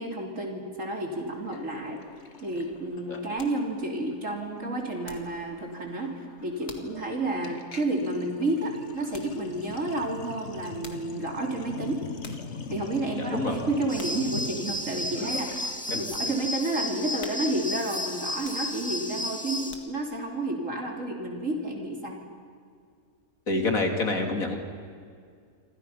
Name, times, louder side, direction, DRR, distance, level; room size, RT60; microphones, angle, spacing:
voice 1, 0.0-2.0 2.4-12.0 12.7-22.2, right 2 dB, 55° right, 1 dB, 3.6 m, -31 dB
Sink (filling or washing), 1.5-3.7 4.0-4.3 4.5-16.0, left 4 dB, 50° left, 1.6 m, -42 dB
sound 1, 3.3-5.5 5.8-6.1 6.7-7.0 7.5-7.6 9.1-9.4 10.6-11.2 11.8-11.9 12.2-12.6 13.1-13.4 14.0-14.3 14.8-14.9 15.5-16.3 16.8-16.9 17.2-17.8 18.3-19.0 19.4-20.2 20.7-20.8, left 4 dB, 85° left, 2.6 m, -48 dB
voice 2, 13.2-13.6 15.9-16.0 23.5-24.6, left 2 dB, 65° left, 3 dB, 3.4 m, -27 dB
sound 2, 13.9-19.7, left 1 dB, 5° left, 2.1 m, -33 dB
29.0 x 25.5 x 5.8 m, 2.2 s
omnidirectional pair, 1.6 m